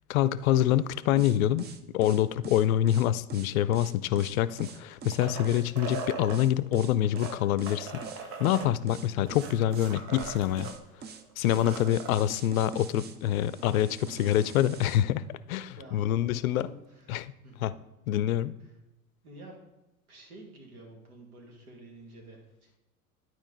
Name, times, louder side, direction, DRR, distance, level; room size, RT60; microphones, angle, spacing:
voice 1, 0.1-8.0 8.4-10.7 11.4-15.2 15.5-16.7 17.1-17.3 17.6-17.7 18.1-18.5, left 12 dB, 70° left, 16 dB, 0.5 m, -26 dB
sound 1, 1.2-15.0, right 6 dB, 25° right, 0.6 m, -44 dB
sound 2, 4.5-6.4 7.0-10.8 11.1-11.2 11.4-12.2 13.7-13.8, right 4 dB, 55° right, 1.2 m, -40 dB
voice 2, 15.8-17.7 19.2-19.6 20.1-22.8, right 1 dB, 75° right, 1 dB, 2.3 m, -50 dB
11.0 x 4.7 x 3.9 m, 0.97 s
figure-of-eight pair, 80°, 44 cm